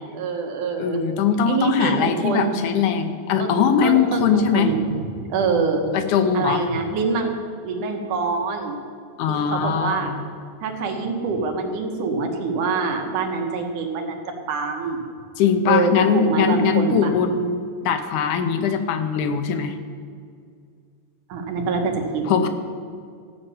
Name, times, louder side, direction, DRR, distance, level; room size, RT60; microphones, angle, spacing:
voice 1, 0.1-1.0 1.5-2.6 3.4-3.5 3.8-4.8 5.2-5.9 6.3-7.3 7.6-8.8 9.3-10.2 10.6-14.2 14.5-15.1 15.7-17.2 21.3-22.3, right 4 dB, 90° right, 3 dB, 2.8 m, -25 dB
voice 2, 0.8-4.7 5.9-6.6 9.2-10.2 15.4-19.8 22.3-22.5, left 7 dB, 90° left, 7 dB, 2.4 m, -21 dB
14.5 x 5.6 x 8.4 m, 2.2 s
omnidirectional pair, 3.4 m